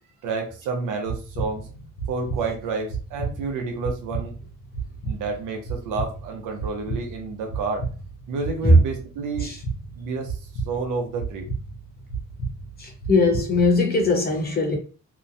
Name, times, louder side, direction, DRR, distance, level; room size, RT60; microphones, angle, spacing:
voice 1, 0.2-4.3 5.0-7.8 8.3-9.5 9.9-10.4 10.6-11.5, right 4 dB, 90° right, 0.8 m, -30 dB
sound 1, 1.1-13.8, right 4 dB, 80° left, 0.8 m, -33 dB
voice 2, 12.8-14.8, left 2 dB, 30° left, 0.9 m, -20 dB
2.9 x 2.1 x 2.6 m
cardioid pair, 90°, 30 cm